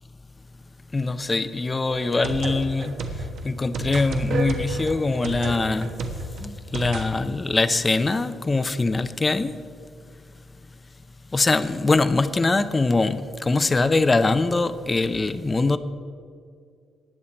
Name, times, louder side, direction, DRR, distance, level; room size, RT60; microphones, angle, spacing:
voice 1, 0.9-5.9 6.4-9.6 11.3-15.8, left 3 dB, 20° left, 0.6 m, -23 dB
sound 1, 1.9-7.1, right 2 dB, 70° right, 1.3 m, -31 dB
20.0 x 7.4 x 4.3 m
cardioid pair, 125°, 0 cm